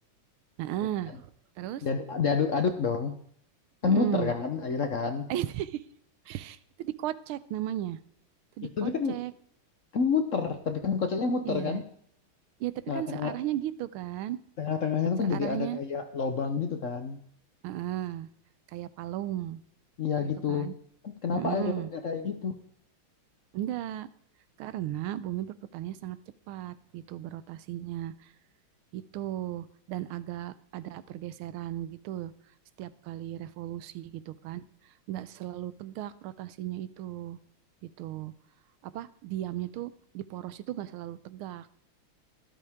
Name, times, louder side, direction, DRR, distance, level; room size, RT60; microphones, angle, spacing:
voice 1, 0.6-1.2 1.6-1.8 3.8-4.3 5.3-5.8 6.3-8.0 8.6-9.3 11.4-11.8 12.6-14.4 15.2-15.8 17.6-18.3 18.7-19.6 20.2-20.7 21.3-21.9 23.5-24.1 24.6-26.2 26.5-28.3 28.9-32.3 32.8-34.6 35.1-37.4 37.8-38.3 38.8-41.7, right 12 dB, 90° right, 15 dB, 1.5 m, -35 dB
voice 2, 1.8-3.1 3.8-5.3 8.6-9.2 9.9-11.8 12.9-13.3 14.6-17.2 20.0-20.7 21.0-22.6, left 5 dB, 55° left, 7 dB, 0.9 m, -29 dB
13.0 x 12.5 x 3.6 m, 0.66 s
omnidirectional pair, 2.3 m